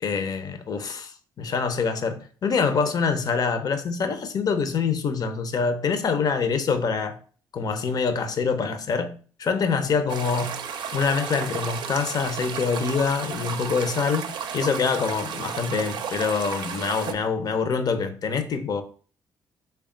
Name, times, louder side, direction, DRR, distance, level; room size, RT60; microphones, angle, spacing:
voice 1, 0.0-7.2 7.5-10.6 10.9-18.8, left 5 dB, 55° left, 0.6 m, -25 dB
sound 1, 10.1-17.1, right 7 dB, 70° right, 0.4 m, -33 dB
3.4 x 2.3 x 3.7 m
supercardioid pair, 70°, 8 cm